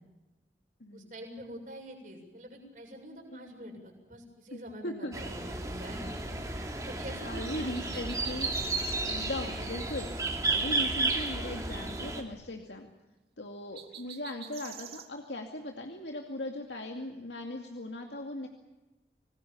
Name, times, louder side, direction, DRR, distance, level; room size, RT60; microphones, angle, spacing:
voice 1, 0.9-6.0 6.5-8.1 9.3-9.7, right 1 dB, 45° right, 2 dB, 7.1 m, -46 dB
voice 2, 4.5-5.2 6.3-6.4 7.3-8.5 9.0-10.1 10.5-12.9 13.4-18.5, left 1 dB, 85° left, 2 dB, 2.4 m, -39 dB
sound 1, 5.1-12.2, right 3 dB, 20° right, 3.0 m, -33 dB
sound 2, 7.7-9.1 13.7-15.1, right 10 dB, 65° right, 2.7 m, -47 dB
26.0 x 20.0 x 7.1 m, 1.1 s
head